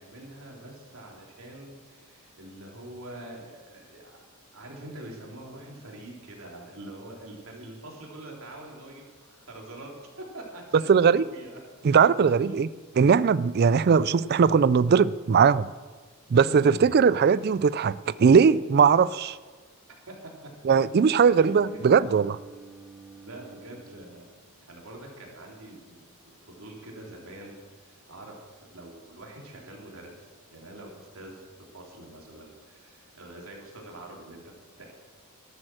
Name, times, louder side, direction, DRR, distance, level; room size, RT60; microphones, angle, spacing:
voice 1, 0.0-4.2 4.5-9.9 10.3-10.9 11.2-11.6 12.4-12.6 16.5-16.9 20.1-20.2 21.4-21.8 23.2-24.3 24.7-31.4 31.7-34.9, right 1 dB, 65° right, 3.7 m, -45 dB
voice 2, 10.9-11.2 11.8-12.7 13.0-15.7 16.3-19.4 20.6-22.4, right 6 dB, 45° right, 0.3 m, -20 dB
Bowed string instrument, 20.9-24.9, right 4 dB, 5° right, 0.7 m, -50 dB
13.0 x 13.0 x 6.2 m
head